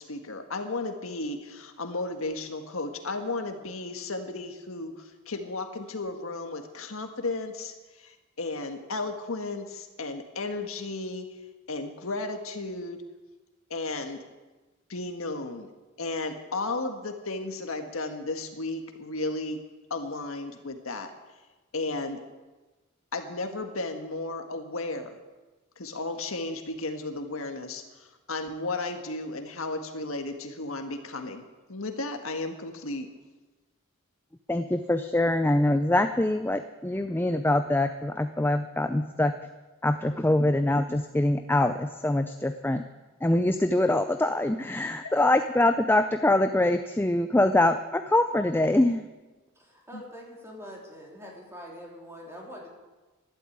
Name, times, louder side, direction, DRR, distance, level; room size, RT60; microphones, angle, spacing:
voice 1, 0.0-11.3 11.7-13.0 13.7-14.2 14.9-15.7 16.0-19.6 19.9-21.1 21.7-22.2 23.1-25.2 25.8-31.4 31.7-33.1 45.0-45.1 49.9-50.0, left 2 dB, 75° left, 6 dB, 1.7 m, -34 dB
voice 2, 34.5-39.3 39.8-42.8 43.2-49.0, left 1 dB, 10° left, 8 dB, 0.5 m, -24 dB
voice 3, 49.6-52.7, equal, 10° right, -1 dB, 3.4 m, -44 dB
12.5 x 12.0 x 8.7 m, 1.2 s
head